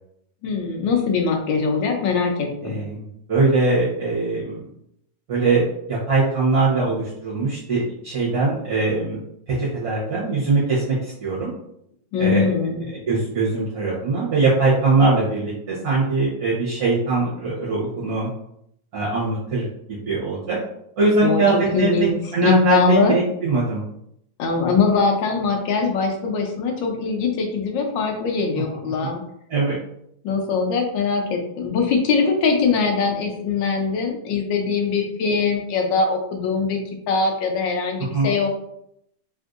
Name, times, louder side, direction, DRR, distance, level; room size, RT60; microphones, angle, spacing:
voice 1, 0.4-2.8 12.1-12.8 21.2-23.1 24.4-29.2 30.2-36.8 37.1-38.5, left 5 dB, 85° left, 2 dB, 1.4 m, -22 dB
voice 2, 2.6-4.6 5.3-9.2 9.5-11.5 12.2-12.4 13.1-18.3 18.9-20.6 21.0-21.9 22.3-23.8 29.5-29.8 38.1-38.3, right 3 dB, 60° right, -8 dB, 1.3 m, -21 dB
3.6 x 2.5 x 2.4 m, 0.74 s
omnidirectional pair, 2.0 m